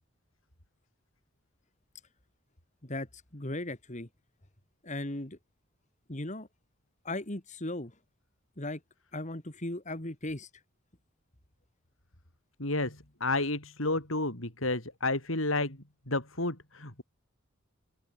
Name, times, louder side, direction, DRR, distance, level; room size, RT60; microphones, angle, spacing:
voice 1, 2.8-4.1 4.8-5.4 6.1-6.5 7.0-7.9 8.6-8.8 9.1-10.5, left 1 dB, 35° left, 2.6 m, -37 dB
voice 2, 12.6-15.8 16.1-17.0, left 2 dB, 75° left, 5.9 m, -31 dB
open air
head